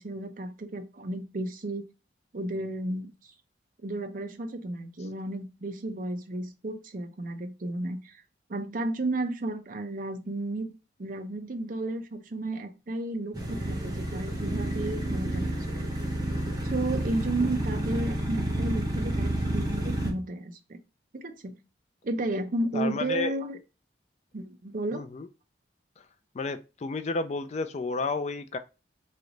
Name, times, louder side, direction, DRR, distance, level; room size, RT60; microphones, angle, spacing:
voice 1, 0.0-1.9 2.3-3.3 3.8-8.2 8.5-10.7 11.0-15.9 16.6-20.8 21.1-21.6 22.0-23.6 24.3-25.1, right 2 dB, 50° right, 0.6 m, -33 dB
sound 1, 13.3-20.1, right 1 dB, 20° right, 0.9 m, -30 dB
voice 2, 22.7-23.4 24.9-25.3 26.3-28.6, left 3 dB, 35° left, 0.3 m, -31 dB
3.2 x 2.9 x 3.8 m
head